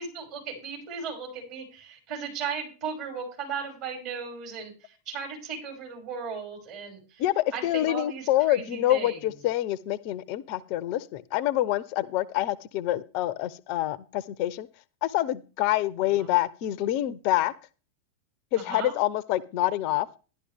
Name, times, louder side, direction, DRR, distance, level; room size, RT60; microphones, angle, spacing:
voice 1, 0.0-7.2 7.5-9.2 16.2-16.3 18.5-18.9, right 6 dB, 45° right, -1 dB, 6.0 m, -36 dB
voice 2, 7.2-14.7 15.0-17.5 18.5-20.1, left 14 dB, 45° left, 19 dB, 0.6 m, -26 dB
11.5 x 11.5 x 3.5 m, 0.34 s
figure-of-eight pair, 90°, 0 cm